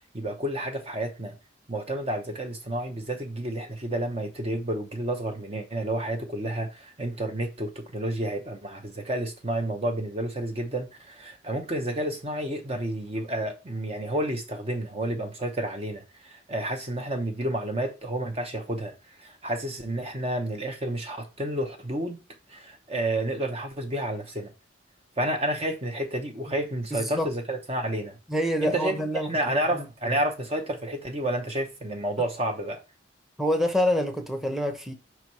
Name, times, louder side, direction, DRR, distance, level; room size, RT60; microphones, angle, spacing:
voice 1, 0.1-1.4 1.7-22.2 22.5-24.5 25.2-28.2 28.6-32.8, right 1 dB, 30° right, 0.8 m, -30 dB
voice 2, 26.9-27.3 28.3-29.3 29.7-30.1 33.4-34.9, equal, ahead, 0.8 m, -26 dB
5.4 x 4.5 x 4.6 m
head